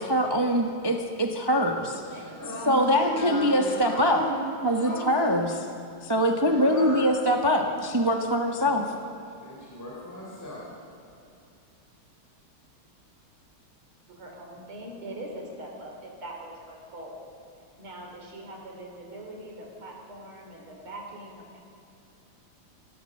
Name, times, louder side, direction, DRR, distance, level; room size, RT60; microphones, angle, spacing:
voice 1, 0.0-2.0 2.7-4.2 4.6-5.5 6.0-8.9, equal, 15° right, 3 dB, 0.8 m, -23 dB
voice 2, 1.4-2.5 3.0-4.0 14.1-17.3 17.8-21.6, right 1 dB, 70° right, 0 dB, 4.2 m, -43 dB
voice 3, 2.2-4.4 4.7-5.3 6.4-7.1 8.6-8.9 9.4-10.7, equal, 5° left, -6 dB, 3.8 m, -35 dB
26.0 x 16.5 x 6.6 m, 2.7 s
omnidirectional pair, 2.4 m